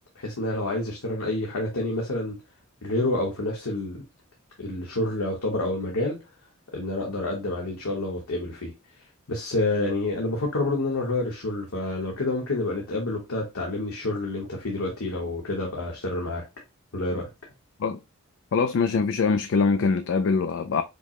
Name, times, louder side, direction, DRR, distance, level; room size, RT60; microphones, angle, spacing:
voice 1, 0.1-2.4 2.8-4.0 4.6-6.2 6.7-8.7 9.3-16.4 16.9-17.3, left 2 dB, 85° left, 1.2 m, -28 dB
voice 2, 18.5-20.8, left 4 dB, 55° left, 0.3 m, -23 dB
5.1 x 2.1 x 2.8 m
head